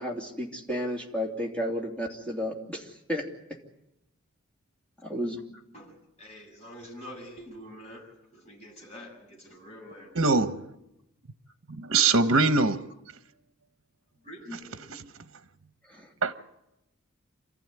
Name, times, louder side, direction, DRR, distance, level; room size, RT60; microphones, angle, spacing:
voice 1, 0.0-3.2 5.0-5.4 15.9-16.1, equal, 5° left, 2.9 m, -32 dB
voice 2, 5.7-10.2 14.2-15.1, left 1 dB, 30° left, 7.2 m, -46 dB
voice 3, 10.1-10.5 11.7-12.8 16.2-16.3, right 3 dB, 65° right, 1.1 m, -22 dB
27.5 x 14.5 x 9.7 m
head